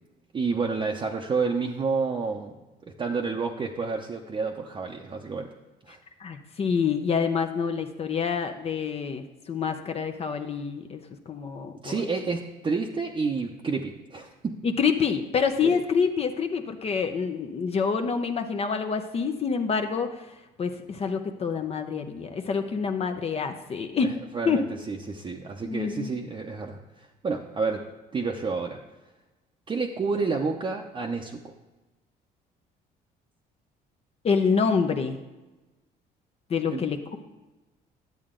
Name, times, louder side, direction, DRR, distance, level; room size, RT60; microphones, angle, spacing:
voice 1, 0.3-2.5 3.0-5.5 5.9-6.0 11.8-14.6 15.6-15.8 24.0-27.9 28.1-28.8 29.7-31.5 36.7-36.8, right 4 dB, 30° right, 0 dB, 0.7 m, -29 dB
voice 2, 6.2-11.0 11.3-12.0 14.6-20.3 20.6-24.1 24.4-24.6 25.6-26.1 34.2-35.2 36.5-37.2, left 6 dB, 35° left, 6 dB, 0.6 m, -27 dB
10.5 x 7.7 x 3.7 m, 1.1 s
cardioid pair, 110°, 17 cm